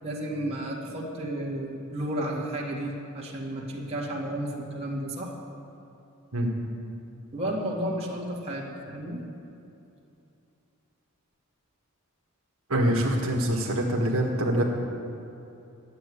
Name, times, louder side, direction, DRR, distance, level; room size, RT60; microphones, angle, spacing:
voice 1, 0.0-5.3 7.3-9.2, right 1 dB, 30° right, -4 dB, 1.9 m, -32 dB
voice 2, 12.7-14.6, right 1 dB, 75° right, 0 dB, 1.6 m, -24 dB
11.5 x 7.8 x 9.8 m, 2.8 s
head